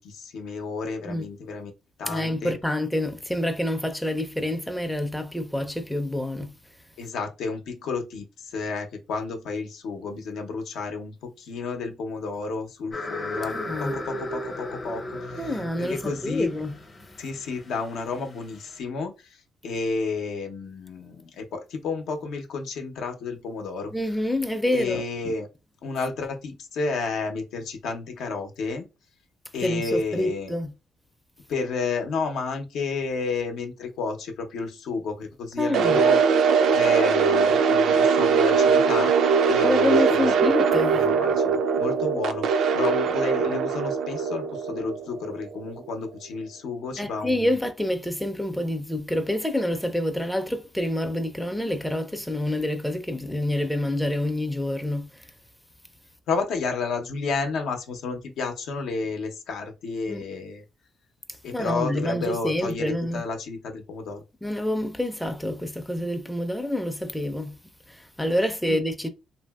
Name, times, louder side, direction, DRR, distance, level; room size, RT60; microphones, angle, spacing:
voice 1, 0.0-1.7 2.0-2.6 7.0-15.5 15.8-16.5 17.2-19.4 19.6-23.9 24.7-25.5 25.8-28.9 29.5-30.6 31.5-36.2 36.7-39.1 39.4-40.5 40.9-47.6 56.3-60.6 61.4-64.2 68.7-68.8, left 4 dB, 80° left, 0.6 m, -31 dB
voice 2, 2.1-6.5 13.5-14.0 15.4-16.7 23.9-25.0 29.6-30.7 35.6-36.0 39.6-41.1 47.0-55.3 60.1-60.3 61.5-63.2 64.4-67.6 67.9-69.1, left 1 dB, 5° left, 0.4 m, -27 dB
sound 1, 12.9-18.7, left 1 dB, 35° left, 0.7 m, -36 dB
sound 2, 35.7-45.8, right 6 dB, 75° right, 0.3 m, -21 dB
2.8 x 2.6 x 2.2 m
cardioid pair, 90°, 0 cm